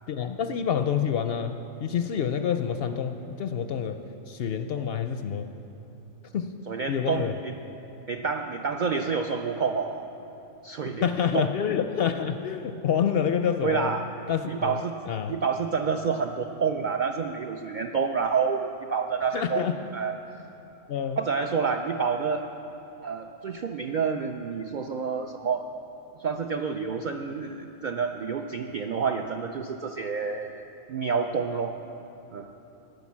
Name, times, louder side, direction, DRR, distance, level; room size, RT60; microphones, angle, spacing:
voice 1, 0.1-5.5 6.3-6.6 6.9-7.3 11.0-13.9 14.3-14.8 15.1-15.3 19.3-19.8 20.9-21.2, left 8 dB, 65° left, 8 dB, 0.6 m, -27 dB
voice 2, 6.7-7.5 8.1-10.1 10.6-11.1 11.3-11.5 13.6-14.1 14.5-15.0 15.3-19.6 19.9-20.1 21.2-22.5 23.0-25.7 26.2-31.8 32.3-32.5, right 5 dB, 65° right, 5 dB, 0.4 m, -28 dB
10.5 x 9.4 x 7.2 m, 2.9 s
omnidirectional pair, 1.3 m